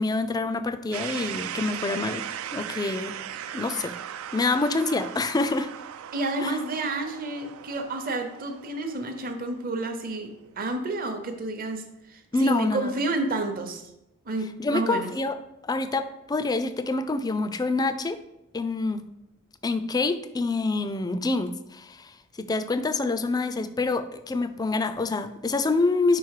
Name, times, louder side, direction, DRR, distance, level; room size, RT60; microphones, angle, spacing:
voice 1, 0.0-2.2 2.5-3.1 3.5-3.9 4.3-5.7 6.4-6.6 12.3-12.9 14.6-15.4 15.6-18.2 18.5-19.0 19.6-22.1 22.4-26.2, left 3 dB, 20° left, 11 dB, 0.3 m, -26 dB
sound 1, 0.9-10.8, right 10 dB, 75° right, 0.3 m, -38 dB
voice 2, 6.1-11.8 12.1-13.8 14.3-15.1, right 2 dB, 45° right, 5 dB, 0.8 m, -30 dB
5.0 x 4.6 x 4.7 m, 0.88 s
head